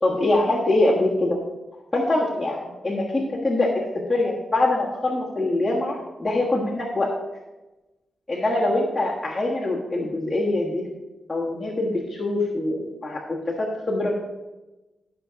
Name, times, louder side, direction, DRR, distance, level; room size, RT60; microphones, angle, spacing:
voice 1, 0.0-1.4 1.9-7.1 8.3-10.8 11.3-13.2 13.6-14.3, left 2 dB, 10° left, -7 dB, 1.5 m, -24 dB
12.0 x 5.7 x 5.1 m, 1.1 s
wide cardioid pair, 155°, 0 cm